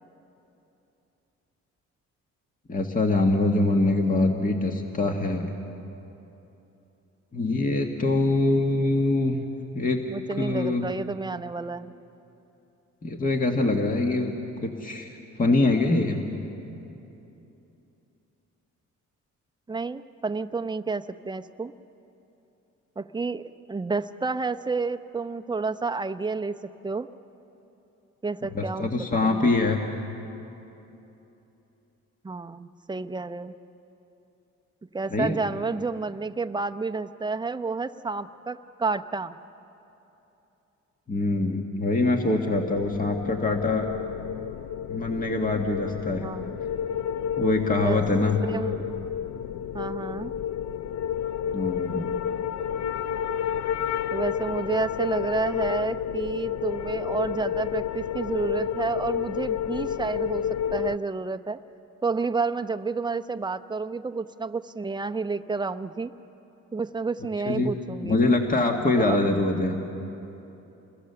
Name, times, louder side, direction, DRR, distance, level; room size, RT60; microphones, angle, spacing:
voice 1, 2.7-5.5 7.3-9.4 9.7-10.0 10.4-10.8 13.0-14.3 14.6-15.1 15.4-16.2 28.5-29.8 35.1-35.4 41.1-43.9 44.9-46.3 47.4-48.4 51.5-52.1 67.5-67.7 68.0-69.8, left 2 dB, 30° left, 3 dB, 1.8 m, -24 dB
voice 2, 10.1-11.9 19.7-21.7 23.0-26.6 26.8-27.1 28.2-28.9 29.2-29.5 32.2-33.6 34.9-39.3 46.2-46.5 47.8-48.0 48.5-48.9 49.7-50.3 54.1-60.5 60.7-61.6 62.0-66.1 66.7-68.2 69.0-69.2, right 4 dB, 15° right, 9 dB, 0.7 m, -30 dB
sound 1, 42.4-61.0, left 9 dB, 70° left, 0.5 m, -30 dB
29.0 x 21.5 x 6.9 m, 3.0 s
cardioid pair, 90°, 30 cm